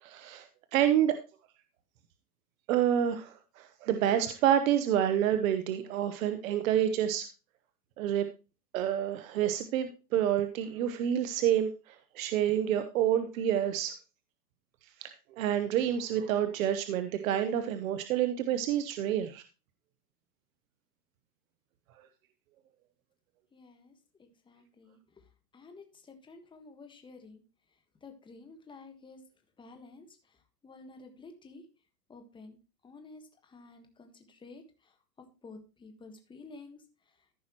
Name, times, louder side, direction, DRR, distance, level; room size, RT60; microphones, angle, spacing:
voice 1, 0.0-1.2 2.7-7.3 8.0-8.3 8.7-14.0 15.0-19.4, right 10 dB, 60° right, 9 dB, 1.0 m, -28 dB
voice 2, 23.5-25.0 25.5-27.4 28.0-29.2 29.6-30.4 30.6-31.7 32.1-32.6 32.8-34.9 35.4-36.8, left 3 dB, 10° left, 5 dB, 1.5 m, -51 dB
14.5 x 5.6 x 3.0 m, 0.31 s
hypercardioid pair, 135°, 47 cm